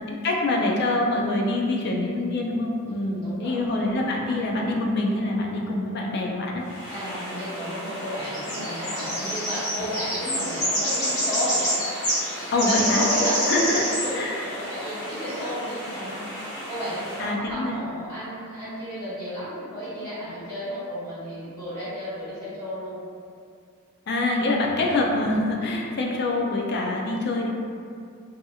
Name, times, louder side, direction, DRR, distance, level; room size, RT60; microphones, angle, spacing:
voice 1, 0.1-6.6 12.5-13.1 13.5-13.8 14.1-14.4 17.2-17.8 24.1-27.5, left 2 dB, 50° left, -1 dB, 0.4 m, -25 dB
voice 2, 2.9-3.5 6.9-11.6 12.6-16.4 16.7-23.0, equal, 15° left, -14 dB, 1.4 m, -32 dB
sound 1, 6.7-17.2, equal, 80° left, 1.3 m, -29 dB
2.7 x 2.7 x 2.3 m, 2.3 s
head